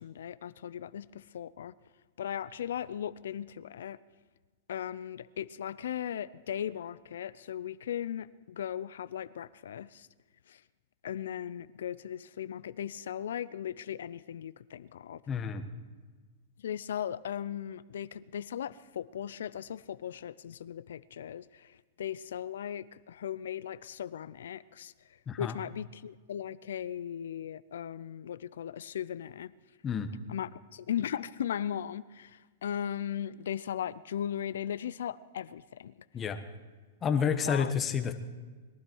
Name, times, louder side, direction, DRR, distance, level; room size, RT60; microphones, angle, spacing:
voice 1, 0.0-1.7 2.2-4.0 4.7-10.1 10.5-10.6 11.0-15.2 16.6-21.7 22.0-24.9 25.4-29.5 30.3-36.0 37.4-37.7, left 9 dB, 80° left, 17 dB, 0.5 m, -37 dB
voice 2, 15.3-15.6 25.3-25.6 29.8-30.1 36.1-36.4 37.0-38.1, left 7 dB, 20° left, 8 dB, 1.2 m, -29 dB
22.0 x 12.5 x 4.6 m, 1.4 s
hypercardioid pair, 135°, 0 cm